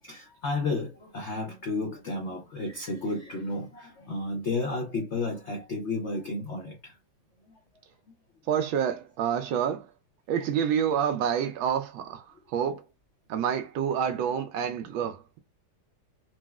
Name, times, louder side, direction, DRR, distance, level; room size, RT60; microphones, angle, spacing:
voice 1, 0.0-7.0 7.4-7.8 12.4-12.5, left 2 dB, 85° left, 0.6 m, -32 dB
voice 2, 8.5-9.9 10.3-12.8 13.3-15.4, right 8 dB, 85° right, 1.4 m, -28 dB
4.0 x 2.0 x 2.3 m
omnidirectional pair, 2.1 m